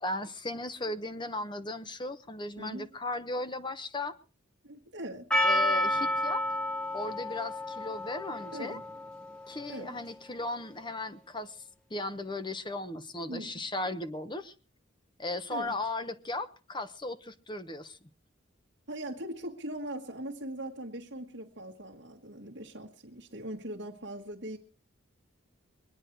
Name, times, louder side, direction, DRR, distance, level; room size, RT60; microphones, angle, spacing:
voice 1, 0.0-4.1 5.4-6.4 6.9-8.8 9.5-11.6 11.9-14.5 15.2-18.0, left 2 dB, 25° left, 1.0 m, -36 dB
voice 2, 4.6-5.3 8.5-8.8 9.7-10.0 13.3-13.6 15.5-15.8 18.9-24.6, right 1 dB, 60° right, 1.5 m, -40 dB
Percussion, 5.3-9.9, left 1 dB, 5° left, 1.6 m, -31 dB
23.0 x 9.7 x 4.6 m
head